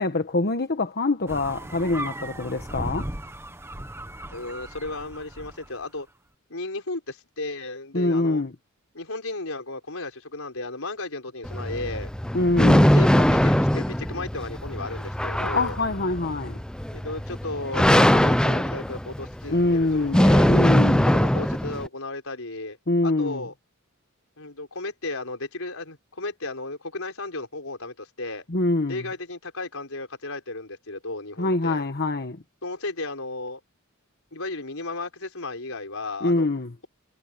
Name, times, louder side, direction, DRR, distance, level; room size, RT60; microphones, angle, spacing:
voice 1, 0.0-3.1 7.9-8.5 12.3-12.9 15.4-16.6 19.5-21.1 22.9-23.4 28.5-29.0 31.4-32.4 36.2-36.7, left 2 dB, 50° left, 1.2 m, -24 dB
sound 1, 1.3-5.8, right 1 dB, 10° right, 1.2 m, -36 dB
voice 2, 4.3-6.1 6.5-8.4 8.9-12.1 12.6-15.8 16.9-20.5 21.0-22.8 23.0-23.5 24.4-28.4 28.9-31.8 32.6-33.6 34.3-36.5, left 2 dB, 70° left, 5.6 m, -34 dB
sound 2, 11.4-21.9, equal, 5° left, 0.5 m, -21 dB
head